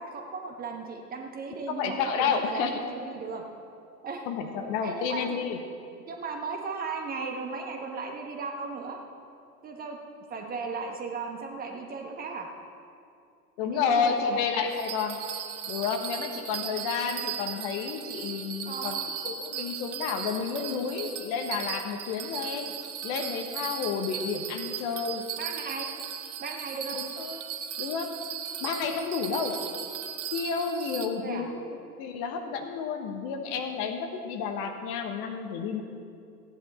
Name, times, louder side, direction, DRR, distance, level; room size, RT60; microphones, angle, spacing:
voice 1, 0.0-2.6 2.9-3.4 4.0-4.2 4.8-5.4 6.1-9.0 9.6-10.0 10.3-12.5 13.6-14.4 18.6-19.0 25.4-25.9 26.4-27.0 31.2-31.5, right 4 dB, 20° right, 3 dB, 1.1 m, -36 dB
voice 2, 1.7-2.8 4.3-5.6 13.6-15.2 15.7-19.0 19.2-22.7 23.0-25.2 26.9-27.4 27.8-28.1 28.6-29.6 30.3-31.6 32.0-35.8, left 6 dB, 35° left, 5 dB, 1.2 m, -30 dB
Bell, 14.7-31.1, right 8 dB, 50° right, 1.0 m, -37 dB
15.5 x 10.0 x 4.3 m, 2.4 s
figure-of-eight pair, 95°, 47 cm